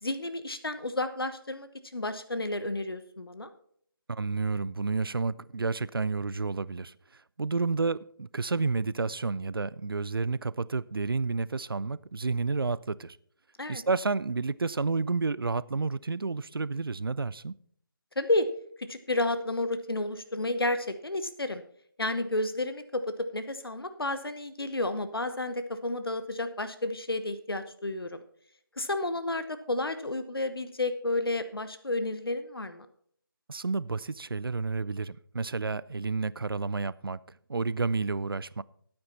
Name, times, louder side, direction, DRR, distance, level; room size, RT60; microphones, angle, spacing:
voice 1, 0.0-3.5 13.6-13.8 18.2-18.5 18.8-21.6 22.0-28.2 28.8-32.9, left 2 dB, 75° left, 1.0 m, -31 dB
voice 2, 4.1-6.9 7.4-13.2 13.7-17.6 33.5-37.2 37.5-38.6, right 4 dB, 75° right, 0.5 m, -30 dB
13.5 x 8.8 x 4.2 m
figure-of-eight pair, 155°, 12 cm